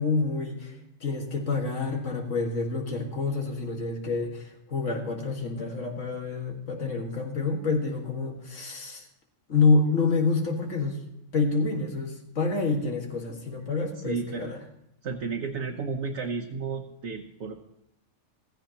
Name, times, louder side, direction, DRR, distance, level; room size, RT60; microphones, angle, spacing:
voice 1, 0.0-9.0 9.5-11.0 11.3-14.6, left 4 dB, 80° left, 2 dB, 2.2 m, -27 dB
voice 2, 14.0-14.5 15.0-17.5, right 4 dB, 65° right, 2 dB, 1.1 m, -32 dB
15.5 x 15.0 x 2.9 m, 0.80 s
omnidirectional pair, 1.3 m